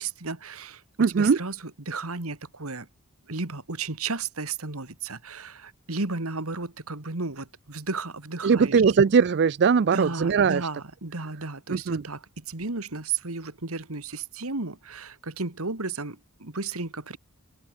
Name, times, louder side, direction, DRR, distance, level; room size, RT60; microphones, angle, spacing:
voice 1, 0.0-0.8 1.1-2.9 3.3-8.8 9.9-17.2, right 3 dB, 70° right, 2.2 m, -33 dB
voice 2, 1.0-1.4 8.4-10.7 11.7-12.0, right 5 dB, 50° right, 0.4 m, -20 dB
open air
head